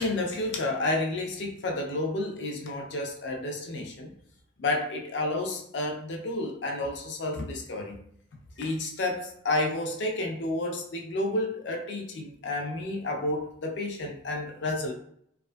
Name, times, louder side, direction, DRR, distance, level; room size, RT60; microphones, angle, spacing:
voice 1, 0.0-4.1 4.6-8.0 8.6-14.9, left 2 dB, 75° left, 2 dB, 0.5 m, -30 dB
2.5 x 2.3 x 2.2 m, 0.68 s
head